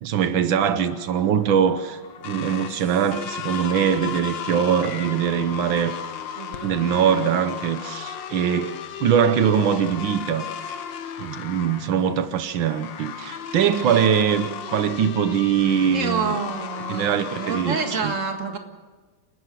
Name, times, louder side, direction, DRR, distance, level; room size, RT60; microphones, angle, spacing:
voice 1, 0.0-5.9 6.6-10.5 11.2-16.3 16.9-17.8 18.0-18.1, right 8 dB, 85° right, 1.7 m, -22 dB
sound 1, 0.9-18.0, left 8 dB, 75° left, 1.8 m, -35 dB
voice 2, 6.4-6.8 13.8-14.1 15.9-18.6, right 5 dB, 40° right, 2.1 m, -28 dB
29.5 x 13.0 x 7.6 m
omnidirectional pair, 2.1 m